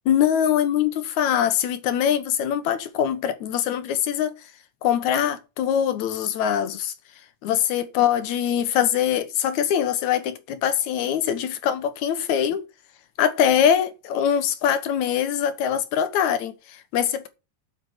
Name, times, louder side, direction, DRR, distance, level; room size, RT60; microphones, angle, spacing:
voice 1, 0.1-4.4 4.8-6.9 7.4-12.6 13.2-17.3, left 9 dB, 70° left, 2.4 m, -23 dB
8.2 x 6.2 x 7.9 m
omnidirectional pair, 3.5 m